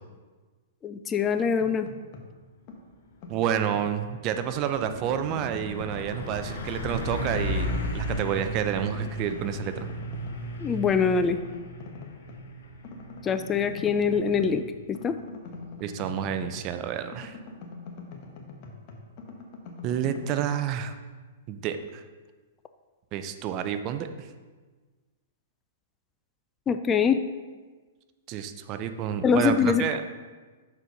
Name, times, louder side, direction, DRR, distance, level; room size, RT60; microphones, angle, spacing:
voice 1, 0.8-1.9 10.6-11.4 13.2-15.2 26.7-27.2 29.2-30.0, left 6 dB, 20° left, 9 dB, 0.3 m, -24 dB
sound 1, 1.4-2.4 2.7-4.4 4.8-6.5 6.8-8.6 8.8-10.4 10.8-12.5 12.8-16.8 17.1-20.4, left 4 dB, 45° left, 1.0 m, -44 dB
Truck, 3.3-3.5 3.9-16.4, equal, 70° left, 1.2 m, -36 dB
voice 2, 3.3-9.9 15.8-17.4 19.8-20.9 21.5-22.0 23.1-24.3 28.3-30.0, right 9 dB, 35° right, 9 dB, 0.5 m, -29 dB
6.1 x 4.3 x 5.3 m, 1.4 s
hypercardioid pair, 125°, 0 cm